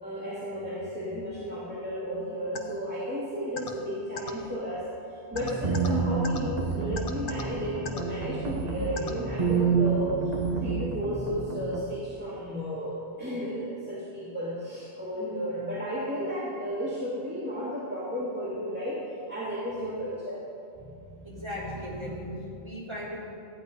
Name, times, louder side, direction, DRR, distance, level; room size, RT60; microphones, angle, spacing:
voice 1, 0.0-20.4, equal, 10° right, -9 dB, 2.3 m, -33 dB
sound 1, 2.5-2.6 3.6-3.7 4.2-4.3 5.4-5.9 6.2-6.4 7.0-7.4 7.9-8.0 9.0-9.1, left 5 dB, 55° left, 1.2 m, -35 dB
sound 2, 5.3-11.8, right 5 dB, 40° right, 1.2 m, -29 dB
voice 2, 20.8-23.3, equal, 25° right, -8 dB, 3.7 m, -38 dB
14.5 x 9.8 x 5.2 m, 2.6 s
omnidirectional pair, 1.1 m